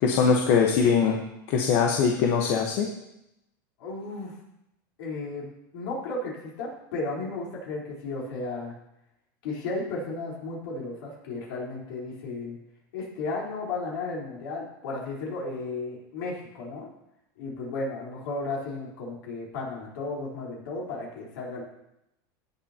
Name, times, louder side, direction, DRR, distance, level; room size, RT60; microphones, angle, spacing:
voice 1, 0.0-1.2 1.5-2.9, left 6 dB, 60° left, 1 dB, 1.2 m, -22 dB
voice 2, 3.8-4.3 5.0-5.5 5.7-8.7 9.4-12.6 12.9-16.9 17.4-21.6, left 3 dB, 75° left, -3 dB, 4.0 m, -34 dB
17.5 x 7.1 x 2.9 m, 0.85 s
supercardioid pair, 130°, 12 cm